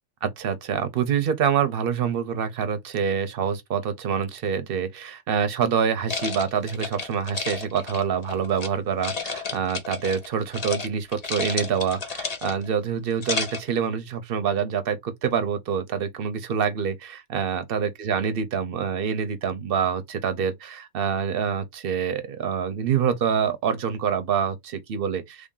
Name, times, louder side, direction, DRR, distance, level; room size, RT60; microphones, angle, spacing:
voice 1, 0.2-25.5, right 7 dB, 55° right, 0.8 m, -26 dB
sound 1, 6.1-8.7 9.0-10.3 10.5-10.9 11.1-12.7 13.1-13.7, left 4 dB, 35° left, 0.7 m, -31 dB
3.3 x 2.6 x 3.7 m
omnidirectional pair, 1.3 m